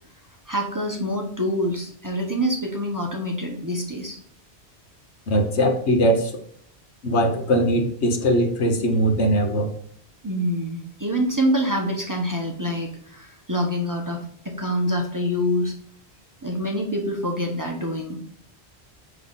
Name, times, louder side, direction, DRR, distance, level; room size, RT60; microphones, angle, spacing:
voice 1, 0.5-4.2 10.2-15.7 16.4-18.2, equal, 20° right, 0 dB, 1.0 m, -26 dB
voice 2, 5.3-6.3 7.0-9.7, equal, 80° left, 5 dB, 1.3 m, -20 dB
5.6 x 5.6 x 3.9 m, 0.64 s
omnidirectional pair, 1.1 m